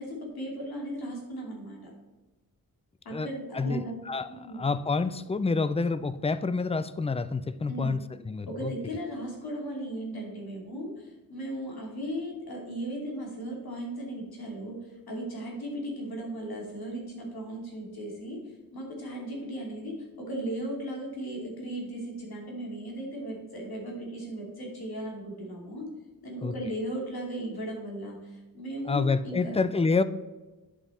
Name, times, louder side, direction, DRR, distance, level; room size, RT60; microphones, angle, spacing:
voice 1, 0.0-1.9 3.0-3.9 4.3-4.6 7.7-8.0 8.6-18.4 18.7-25.9 26.2-29.6, right 1 dB, 85° left, -2 dB, 2.7 m, -36 dB
voice 2, 3.5-4.3 4.6-8.7 26.4-26.5 28.9-30.0, left 4 dB, 20° left, 13 dB, 0.3 m, -28 dB
10.5 x 5.7 x 4.2 m, 1.1 s
wide cardioid pair, 160°, 36 cm